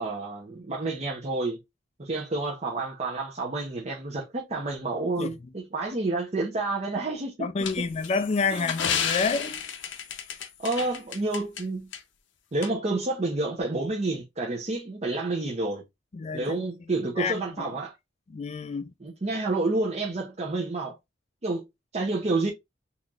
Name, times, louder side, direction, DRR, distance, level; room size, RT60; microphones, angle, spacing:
voice 1, 0.0-1.6 2.0-7.5 7.8-7.9 8.5-8.7 10.6-11.9 12.5-15.8 16.3-17.9 19.0-21.0 21.4-21.7 21.9-22.5, right 2 dB, 35° right, 0.7 m, -29 dB
voice 2, 7.4-9.6 16.1-16.6 17.2-17.7 18.3-18.9, left 4 dB, 35° left, 0.4 m, -29 dB
sound 1, 7.6-11.6 11.9-12.0 12.6-12.7, left 7 dB, 85° left, 0.7 m, -32 dB
3.9 x 3.0 x 2.4 m
head